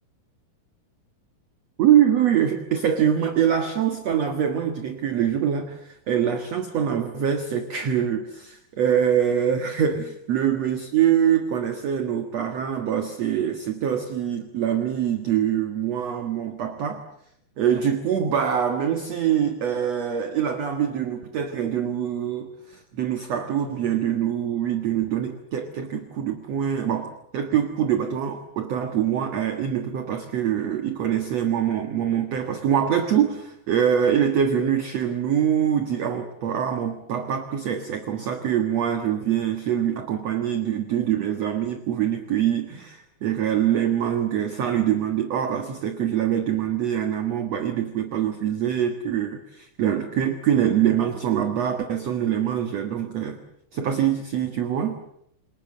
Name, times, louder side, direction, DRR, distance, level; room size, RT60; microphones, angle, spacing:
voice 1, 1.8-17.0 17.6-53.4 53.7-55.0, right 9 dB, 55° right, 7 dB, 2.3 m, -24 dB
29.0 x 21.5 x 7.6 m, 0.71 s
omnidirectional pair, 4.5 m